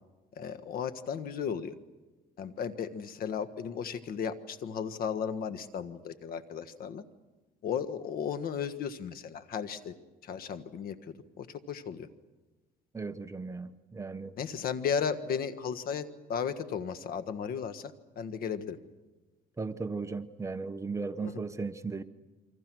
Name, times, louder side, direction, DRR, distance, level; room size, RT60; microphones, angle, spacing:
voice 1, 0.4-1.7 2.4-7.0 7.6-9.9 10.2-12.1 14.4-18.8 21.2-21.4, left 7 dB, 60° left, 1.5 m, -35 dB
voice 2, 12.9-14.4 19.6-22.0, right 4 dB, 15° right, 1.0 m, -36 dB
28.5 x 25.0 x 6.2 m
cardioid pair, 110°, 17 cm